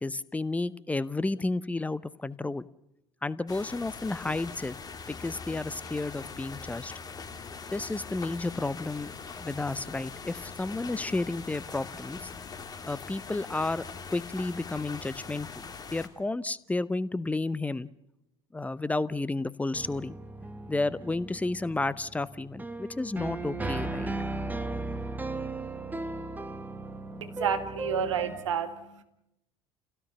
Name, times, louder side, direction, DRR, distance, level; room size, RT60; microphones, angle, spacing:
voice 1, 0.0-2.7 3.2-4.8 5.1-6.9 7.7-9.1 9.4-12.2 12.9-13.8 14.1-15.6 15.9-17.9 18.5-20.2 20.7-24.1, left 2 dB, 10° left, 18 dB, 0.7 m, -31 dB
sound 1, 3.5-16.1, left 5 dB, 25° left, 2.6 m, -42 dB
sound 2, 19.7-28.4, right 2 dB, 10° right, 1.4 m, -36 dB
voice 2, 27.2-29.0, right 7 dB, 75° right, 8 dB, 1.6 m, -30 dB
29.5 x 17.0 x 6.9 m, 0.87 s
figure-of-eight pair, 65°, 16 cm